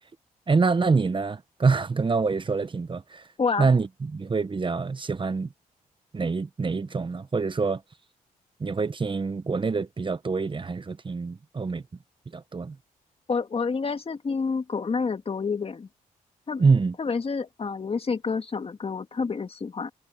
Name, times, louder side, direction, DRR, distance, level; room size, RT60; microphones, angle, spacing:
voice 1, 0.5-3.2 3.6-5.5 6.1-7.8 8.6-11.8 12.3-12.7 16.6-16.9, right 4 dB, 35° right, 1.2 m, -25 dB
voice 2, 3.4-3.7 13.3-15.9 16.5-16.6 17.0-19.9, left 5 dB, 40° left, 1.9 m, -28 dB
cardioid pair, 65°, 15 cm